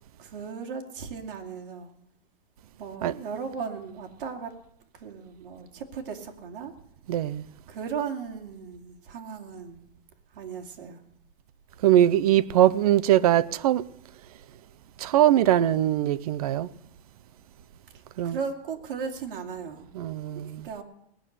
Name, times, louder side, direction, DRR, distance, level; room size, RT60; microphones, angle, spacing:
voice 1, 0.2-1.9 2.8-4.5 5.0-6.7 7.7-9.8 10.3-11.0 18.2-19.8 20.3-20.8, right 6 dB, 65° right, 2.7 m, -36 dB
voice 2, 7.1-7.5 11.8-13.8 15.0-16.7 18.2-18.4 19.9-20.7, right 12 dB, 40° right, 0.5 m, -21 dB
18.5 x 6.7 x 10.0 m
supercardioid pair, 175°, 29 cm